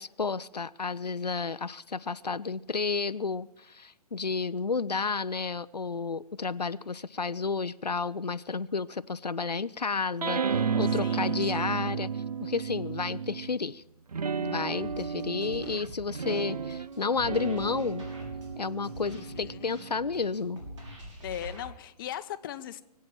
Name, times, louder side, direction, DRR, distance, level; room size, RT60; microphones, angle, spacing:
voice 1, 0.0-10.4 10.8-13.8 14.4-18.1 18.6-20.6, left 4 dB, 85° left, 0.5 m, -31 dB
sound 1, 10.2-13.6 14.1-20.9, right 6 dB, 70° right, 0.5 m, -33 dB
voice 2, 11.0-11.7 19.2-19.7 21.2-22.8, left 11 dB, 35° left, 0.8 m, -39 dB
sound 2, 14.8-21.6, equal, 50° right, 6.3 m, -45 dB
23.0 x 8.3 x 7.5 m
figure-of-eight pair, 125°, 20 cm